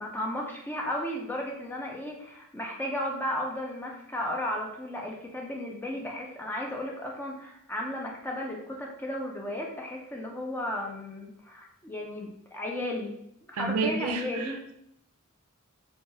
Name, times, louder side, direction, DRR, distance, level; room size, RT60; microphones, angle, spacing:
voice 1, 0.0-13.2 13.5-14.6, left 1 dB, 10° left, 0 dB, 0.4 m, -34 dB
voice 2, 13.5-14.7, right 4 dB, 90° right, 6 dB, 0.4 m, -30 dB
3.0 x 2.2 x 2.7 m, 0.76 s
head